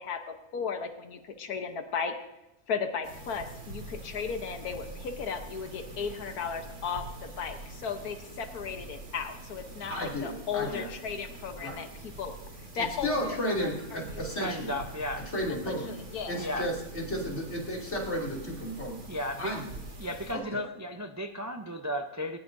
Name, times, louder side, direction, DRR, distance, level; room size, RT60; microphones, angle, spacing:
voice 1, 0.0-2.2 2.7-11.9 12.2-12.3 12.7-14.6 15.6-16.5, left 6 dB, 80° left, 6 dB, 1.6 m, -36 dB
sound 1, 3.0-20.3, right 2 dB, 75° right, 3.1 m, -45 dB
voice 2, 9.8-10.9 11.6-11.8 12.7-14.7 15.2-19.0 19.4-19.7 20.3-20.6, equal, 45° left, -2 dB, 3.2 m, -33 dB
voice 3, 14.4-15.3 16.3-16.7 19.1-19.6 20.0-22.4, equal, 25° right, 5 dB, 0.3 m, -35 dB
19.5 x 18.5 x 2.7 m, 0.96 s
omnidirectional pair, 1.6 m